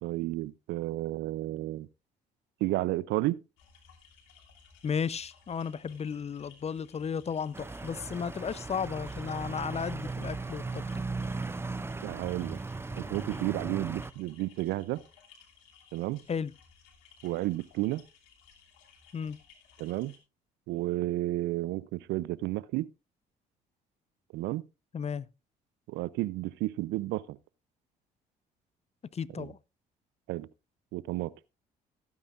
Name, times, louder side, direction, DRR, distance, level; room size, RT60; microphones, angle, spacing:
voice 1, 0.0-1.9 2.6-3.4 12.0-12.6 13.0-15.0 15.9-16.2 17.2-18.0 19.8-20.2 20.7-22.9 24.3-24.6 25.9-27.4 29.4-29.5 30.3-30.5 30.9-31.3, right 17 dB, 70° right, 0.5 m, -32 dB
sound 1, 3.6-20.2, left 6 dB, 75° left, 2.7 m, -59 dB
voice 2, 4.8-10.8 16.3-16.5 19.1-19.4 24.9-25.3 29.1-29.6, left 6 dB, 35° left, 0.6 m, -34 dB
sound 2, 7.5-14.1, right 3 dB, 15° right, 0.5 m, -37 dB
17.0 x 9.3 x 2.4 m
hypercardioid pair, 50°, 19 cm